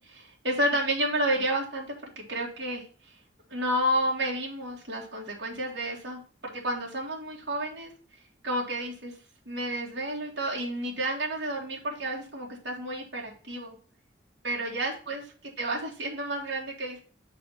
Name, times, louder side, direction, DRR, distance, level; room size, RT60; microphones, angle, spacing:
voice 1, 0.0-1.9 2.2-2.9 3.5-7.9 8.4-9.1 9.5-13.8 14.4-17.0, right 1 dB, 65° right, -3 dB, 1.8 m, -31 dB
7.4 x 3.5 x 5.5 m, 0.39 s
head